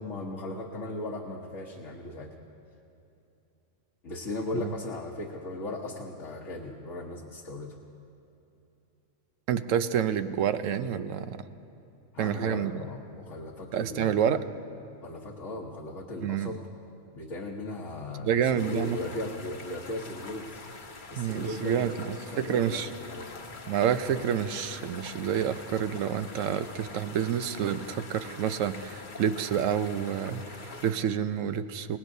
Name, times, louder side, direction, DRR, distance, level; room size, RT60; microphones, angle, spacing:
voice 1, 0.0-2.4 4.0-7.8 12.1-14.4 15.0-16.6 17.1-20.6 21.1-22.0 22.3-23.4, left 2 dB, 70° left, -2 dB, 1.4 m, -37 dB
voice 2, 9.5-11.4 12.2-12.8 13.7-14.4 16.2-16.5 18.2-19.0 21.1-22.9 23.7-32.0, right 8 dB, 85° right, 11 dB, 1.0 m, -28 dB
sound 1, 18.6-30.9, left 3 dB, 40° left, 1.1 m, -45 dB
28.5 x 18.5 x 2.7 m, 2.8 s
omnidirectional pair, 1.3 m